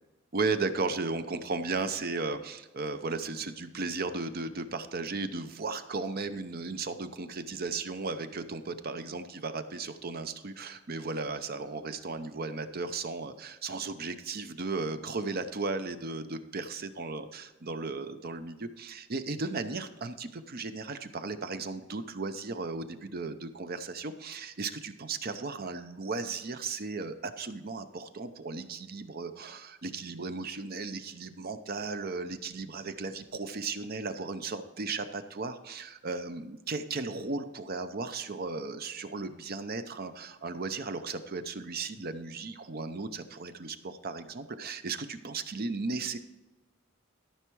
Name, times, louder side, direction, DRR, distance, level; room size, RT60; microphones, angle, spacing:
voice 1, 0.3-46.2, right 3 dB, 50° right, 10 dB, 0.7 m, -35 dB
13.5 x 5.7 x 4.6 m, 1.1 s
head